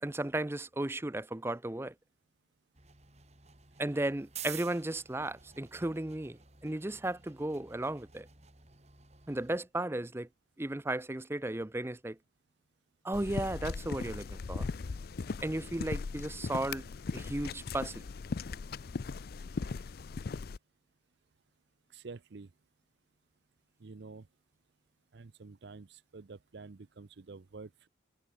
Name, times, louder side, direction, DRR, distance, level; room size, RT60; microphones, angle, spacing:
voice 1, 0.0-1.9 3.8-8.3 9.3-10.3 10.6-12.2 13.0-14.7 15.4-16.9 17.1-18.1, right 1 dB, 10° right, 0.5 m, -35 dB
sound 1, 2.7-9.6, right 9 dB, 35° right, 4.1 m, -51 dB
sound 2, 13.1-20.6, left 4 dB, 50° left, 0.4 m, -39 dB
voice 2, 21.9-22.5 23.8-24.3 25.1-27.9, right 4 dB, 60° right, 0.6 m, -49 dB
head